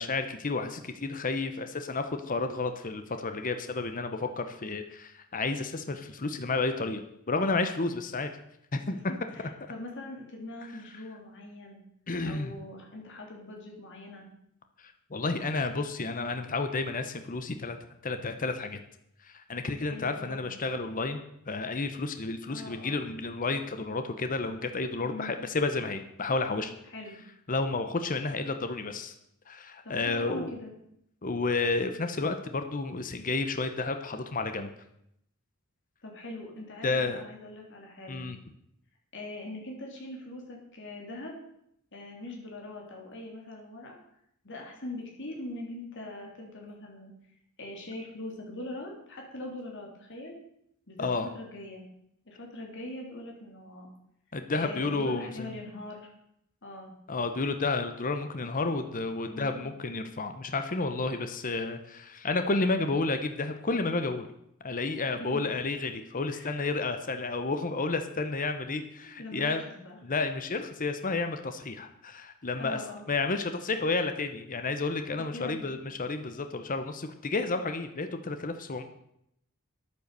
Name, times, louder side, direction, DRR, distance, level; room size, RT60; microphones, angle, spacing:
voice 1, 0.0-8.3 8.7-9.0 10.9-11.0 12.1-12.5 14.8-17.8 18.0-18.8 19.2-21.2 21.5-26.7 27.5-29.1 29.5-30.6 31.2-34.7 36.8-37.2 38.1-38.4 51.0-51.3 54.3-55.6 57.1-64.3 64.6-69.6 70.0-72.8 73.1-78.8, left 3 dB, 40° left, 8 dB, 0.9 m, -31 dB
voice 2, 9.1-11.8 12.2-14.3 19.8-20.5 22.5-23.0 25.0-25.4 26.9-27.2 29.8-30.7 36.0-38.2 39.1-41.4 41.9-43.9 44.4-47.1 47.6-50.3 50.9-51.1 51.3-51.8 52.3-53.9 54.5-56.1 56.6-56.9 59.2-59.7 65.1-65.7 66.3-66.6 69.0-70.0 72.5-73.1 75.1-75.8, left 1 dB, 60° left, 0 dB, 3.2 m, -42 dB
10.0 x 9.2 x 6.8 m, 0.76 s
head